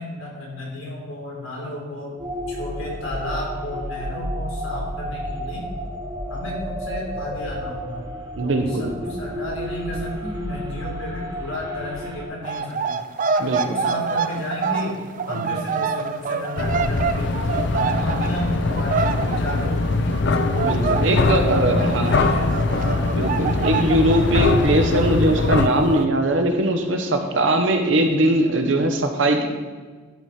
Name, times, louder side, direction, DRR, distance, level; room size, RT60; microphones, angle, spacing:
voice 1, 0.0-2.2 2.5-5.7 6.3-8.0 8.4-13.0 13.4-17.3 17.6-20.2 20.5-23.1, left 1 dB, 80° left, -2 dB, 2.8 m, -33 dB
sound 1, 2.2-12.3, equal, 20° right, 1.0 m, -31 dB
voice 2, 8.4-8.9 13.4-13.8 15.3-15.5 20.6-22.1 23.1-29.5, right 1 dB, 65° right, 5 dB, 1.0 m, -21 dB
sound 2, 12.4-20.3 20.6-26.0, right 5 dB, 40° right, 0.4 m, -27 dB
sound 3, 16.6-25.7, left 3 dB, 60° left, 0.5 m, -22 dB
11.5 x 4.8 x 4.4 m, 1.4 s
head